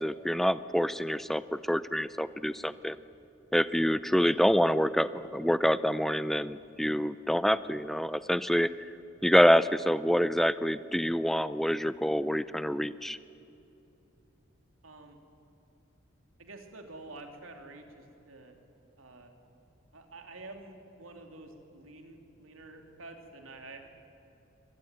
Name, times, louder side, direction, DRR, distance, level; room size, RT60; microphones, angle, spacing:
voice 1, 0.0-1.4 1.7-3.0 3.5-8.7 9.2-13.2, equal, ahead, 15 dB, 0.4 m, -26 dB
voice 2, 14.8-15.2 16.4-18.5 19.0-19.3 19.9-23.8, right 2 dB, 90° right, 4 dB, 3.1 m, -48 dB
24.5 x 19.5 x 9.2 m, 2.9 s
head